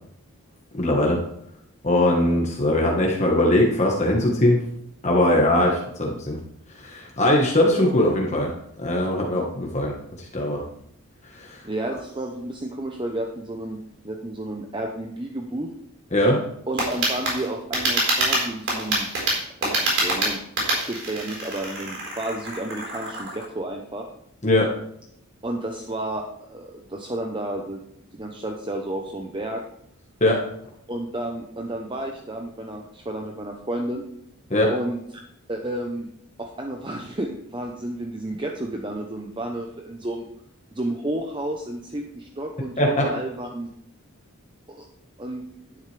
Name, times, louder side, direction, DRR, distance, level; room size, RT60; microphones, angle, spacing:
voice 1, 0.8-1.2 1.8-4.6 5.0-6.4 6.8-8.5 8.8-9.9 10.3-10.6 11.4-11.6 16.1-16.4 24.4-24.7 30.2-30.4 34.5-34.7 42.8-43.1, left 1 dB, 30° left, -1 dB, 1.4 m, -20 dB
voice 2, 11.6-13.8 14.0-15.7 16.7-19.1 19.6-20.4 20.7-24.1 25.4-27.8 28.1-29.6 30.9-34.0 34.7-35.0 35.5-36.1 36.4-40.3 40.7-43.7 44.7-44.8 45.2-45.4, right 1 dB, 20° right, 2 dB, 0.8 m, -31 dB
sound 1, 16.8-23.4, right 1 dB, 55° right, 4.4 m, -26 dB
11.0 x 10.5 x 3.4 m, 0.73 s
head